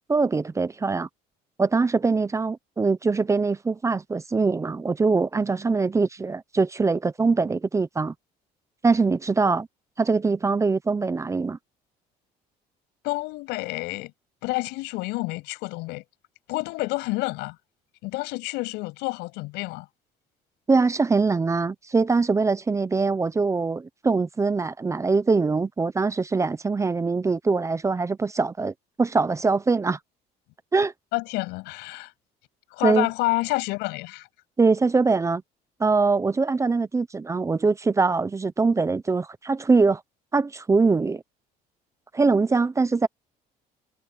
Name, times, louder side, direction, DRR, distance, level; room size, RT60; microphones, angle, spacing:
voice 1, 0.1-1.1 1.6-8.1 8.8-9.7 10.0-11.6 20.7-30.0 30.7-30.9 32.8-33.1 34.6-35.4 35.8-40.0 40.3-41.2 42.1-43.1, right 4 dB, 15° right, 0.8 m, -23 dB
voice 2, 13.0-14.1 14.4-16.0 16.5-17.6 18.0-19.9 31.1-32.1 32.7-34.3, left 22 dB, 85° left, 7.9 m, -29 dB
cardioid pair, 120°, 17 cm